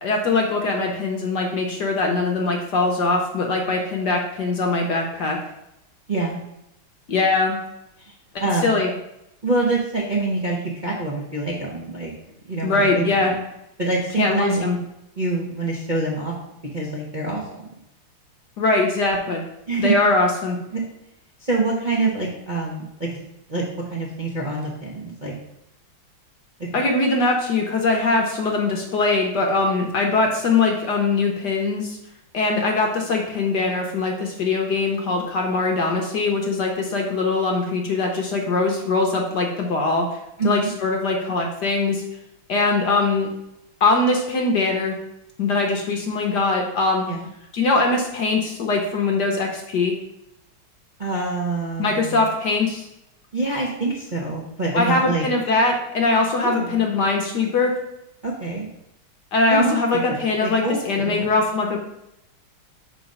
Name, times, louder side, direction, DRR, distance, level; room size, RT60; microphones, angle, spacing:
voice 1, 0.0-5.4 7.1-7.6 8.6-8.9 12.6-13.4 14.2-14.8 18.6-19.4 19.8-20.6 26.7-32.0 32.3-40.1 40.4-42.0 42.5-43.3 43.8-44.9 45.4-47.1 47.5-49.9 51.8-52.9 54.7-57.7 59.3-61.8, left 3 dB, 60° left, 2 dB, 1.3 m, -21 dB
voice 2, 6.1-6.4 8.0-8.1 8.4-8.8 9.4-12.1 12.5-13.4 13.8-14.6 15.2-16.3 16.7-17.7 19.7-19.9 20.7-20.8 21.4-23.2 23.5-23.6 23.9-25.3 26.6-26.8 40.4-40.7 47.0-47.3 51.0-52.2 53.3-55.2 56.4-56.8 58.2-58.7 59.5-61.3, right 3 dB, 35° right, -5 dB, 0.7 m, -26 dB
6.0 x 3.9 x 5.3 m, 0.82 s
omnidirectional pair, 2.4 m